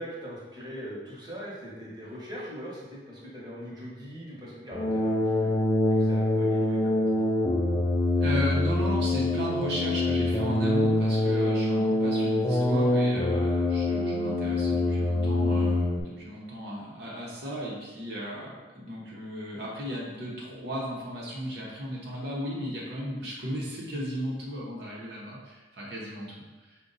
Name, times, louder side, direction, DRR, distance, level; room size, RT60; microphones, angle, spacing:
voice 1, 0.0-5.5 5.9-7.2 26.1-26.2, equal, 25° right, -7 dB, 1.1 m, -41 dB
sound 1, 4.7-16.0, left 1 dB, 20° left, 0.3 m, -25 dB
voice 2, 8.2-26.8, equal, 65° right, -5 dB, 0.8 m, -35 dB
4.9 x 2.2 x 3.9 m, 1.2 s
head